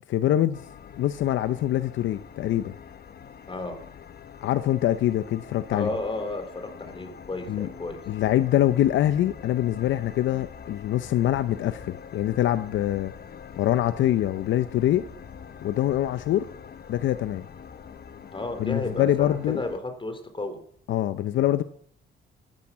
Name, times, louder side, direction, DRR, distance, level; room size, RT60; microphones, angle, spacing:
voice 1, 0.1-0.6 1.0-2.8 4.4-5.9 7.5-7.7 8.1-13.1 13.6-15.0 15.6-16.5 16.9-17.4 18.6-19.6 20.9-21.6, left 12 dB, 75° left, 0.7 m, -24 dB
sound 1, 0.5-19.8, left 7 dB, 50° left, 1.3 m, -44 dB
voice 2, 5.7-8.0 18.3-20.6, left 2 dB, 25° left, 3.5 m, -32 dB
14.5 x 10.5 x 7.3 m
cardioid pair, 90°, 20 cm